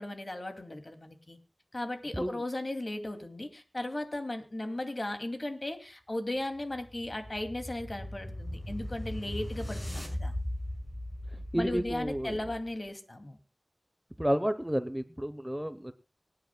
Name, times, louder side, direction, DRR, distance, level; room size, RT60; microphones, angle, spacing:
voice 1, 0.0-1.4 1.7-10.4 11.5-13.4, left 1 dB, 45° left, 6 dB, 2.5 m, -36 dB
sound 1, 6.4-12.7, left 1 dB, 25° left, 6.2 m, -39 dB
voice 2, 11.5-12.4 14.2-15.9, equal, 10° right, 12 dB, 0.9 m, -31 dB
25.5 x 9.4 x 2.3 m, 0.31 s
wide cardioid pair, 55°, 0 cm